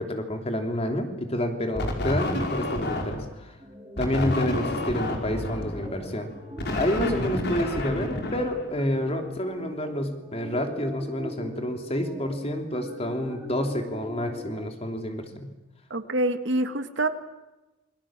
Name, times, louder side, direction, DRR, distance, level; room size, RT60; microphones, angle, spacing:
voice 1, 0.0-3.5 4.0-6.3 6.7-15.5, left 1 dB, 30° left, 5 dB, 3.2 m, -29 dB
sound 1, 1.8-3.4 4.0-9.1, left 1 dB, 55° left, 4.9 m, -30 dB
sound 2, 3.6-14.7, equal, 15° right, 3.7 m, -42 dB
voice 2, 15.9-17.1, right 1 dB, 60° right, 9 dB, 1.9 m, -26 dB
28.0 x 23.0 x 7.5 m, 1.1 s
head